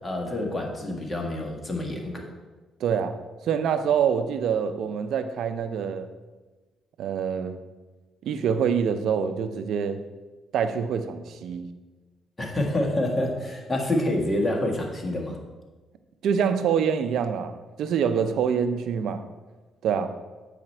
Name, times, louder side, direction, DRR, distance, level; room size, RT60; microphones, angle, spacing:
voice 1, 0.0-2.2 12.4-15.4, left 1 dB, 20° left, 1 dB, 1.6 m, -27 dB
voice 2, 2.8-3.2 3.4-6.1 7.0-7.5 8.2-10.0 10.5-11.7 16.2-17.5 17.8-19.2 19.8-20.1, right 7 dB, 75° right, 9 dB, 0.5 m, -25 dB
8.5 x 5.0 x 4.4 m, 1.2 s
cardioid pair, 90°, 0 cm